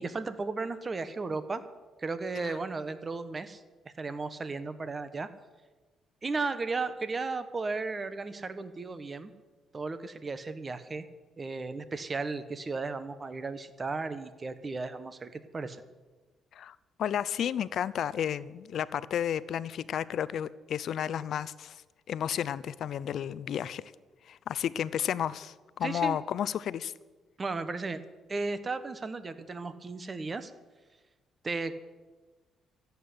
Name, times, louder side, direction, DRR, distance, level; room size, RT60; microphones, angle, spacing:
voice 1, 0.0-1.6 2.0-5.3 6.2-9.3 9.7-11.0 11.4-15.8 25.8-26.2 27.4-28.0 28.3-30.5 31.4-31.8, right 3 dB, 30° right, 12 dB, 1.1 m, -35 dB
voice 2, 16.5-21.8 22.1-23.8 24.3-26.9, left 9 dB, 65° left, 17 dB, 0.5 m, -32 dB
14.0 x 8.2 x 9.5 m, 1.3 s
cardioid pair, 90°, 0 cm